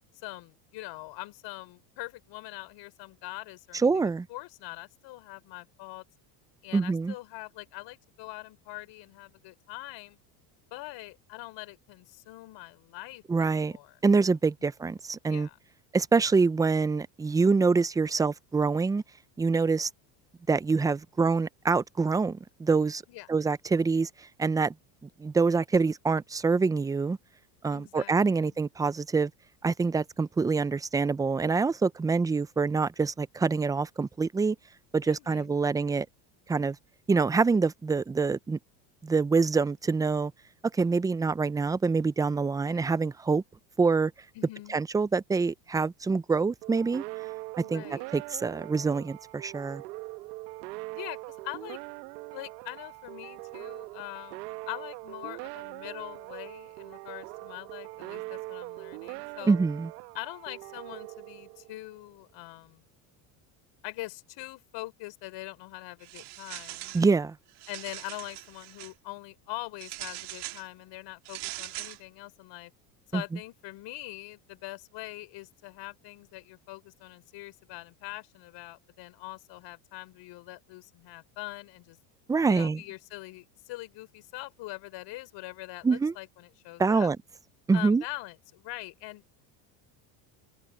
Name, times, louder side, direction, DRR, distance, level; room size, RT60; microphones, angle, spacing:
voice 1, 0.1-4.0 4.3-6.0 6.6-10.2 10.7-14.0 15.3-15.6 17.5-17.7 23.1-23.3 27.7-28.6 35.0-35.7 42.7-42.9 44.3-44.8 47.6-48.1 50.9-51.8 52.3-59.6 60.1-62.8 63.8-66.9 67.7-72.7 73.1-82.0 82.5-87.1 87.7-89.4, left 18 dB, 60° left, 4.1 m, -43 dB
voice 2, 3.8-4.3 6.7-7.1 13.3-13.7 14.0-15.5 15.9-19.0 19.4-19.9 20.5-23.0 23.3-24.1 24.4-24.7 25.2-27.2 27.6-29.3 29.6-34.6 34.9-36.1 36.5-36.8 37.1-38.6 39.0-40.3 40.7-43.4 43.8-44.1 44.7-47.0 47.7-47.8 48.1-49.8 59.5-59.9 66.9-67.4 73.1-73.2 82.3-82.8 85.8-86.1 86.8-87.2 87.7-88.0, right 4 dB, 10° right, 0.4 m, -25 dB
sound 1, 46.6-62.0, right 22 dB, 80° right, 1.3 m, -42 dB
sound 2, 66.0-67.1 67.5-68.9 69.8-70.7 71.3-72.0, right 16 dB, 55° right, 2.1 m, -41 dB
open air
supercardioid pair, 110°, 48 cm